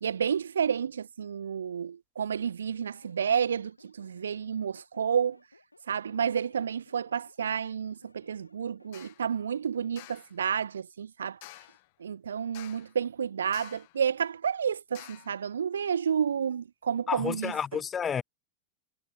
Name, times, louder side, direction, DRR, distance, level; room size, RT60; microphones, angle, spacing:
voice 1, 0.0-5.4 5.9-11.4 12.0-17.5, right 7 dB, 70° right, 1.1 m, -30 dB
sound 1, 2.8-9.2, left 2 dB, 85° left, 6.9 m, -61 dB
sound 2, 8.9-9.2 10.0-10.3 11.4-11.9 12.5-13.0 13.5-14.0 14.9-15.4, left 23 dB, 50° left, 2.5 m, -49 dB
voice 2, 17.1-18.2, left 7 dB, 20° left, 0.5 m, -30 dB
figure-of-eight pair, 90°, 0 cm